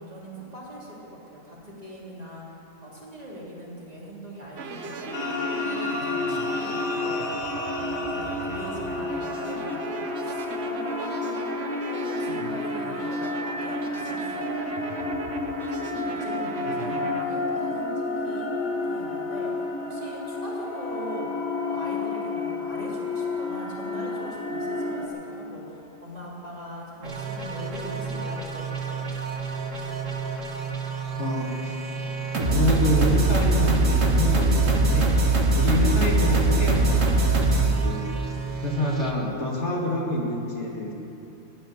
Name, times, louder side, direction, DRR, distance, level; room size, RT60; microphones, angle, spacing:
voice 1, 0.0-7.2 7.8-11.4 11.8-18.5 18.8-19.5 19.8-29.1, equal, 30° right, -6 dB, 3.3 m, -41 dB
sound 1, 4.6-17.3, right 4 dB, 55° right, 1.2 m, -37 dB
sound 2, 5.1-25.1, left 3 dB, 90° left, 2.2 m, -30 dB
sound 3, 27.0-39.1, right 3 dB, 70° right, 1.8 m, -24 dB
voice 2, 31.2-31.8 32.5-35.2 35.5-37.2 37.6-38.1 38.6-40.9, left 1 dB, 55° left, -2 dB, 2.1 m, -27 dB
15.5 x 7.9 x 9.9 m, 2.9 s
omnidirectional pair, 1.4 m